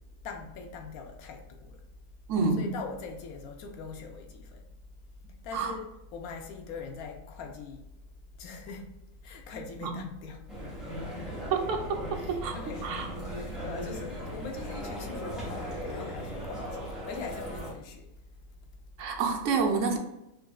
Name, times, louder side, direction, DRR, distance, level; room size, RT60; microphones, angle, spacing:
voice 1, 0.0-1.8 2.6-4.7 5.4-7.9 8.4-9.0 9.2-10.5 12.2-18.1, left 4 dB, 85° left, 1.1 m, -42 dB
voice 2, 2.3-2.7 5.5-5.7 9.8-10.0 11.5-12.6 12.8-13.1 19.0-20.0, right 4 dB, 65° right, 0.9 m, -28 dB
sound 1, 10.5-17.7, equal, ahead, 0.9 m, -38 dB
Car, 11.0-16.5, equal, 65° left, 1.2 m, -45 dB
5.4 x 2.6 x 2.3 m
omnidirectional pair, 1.5 m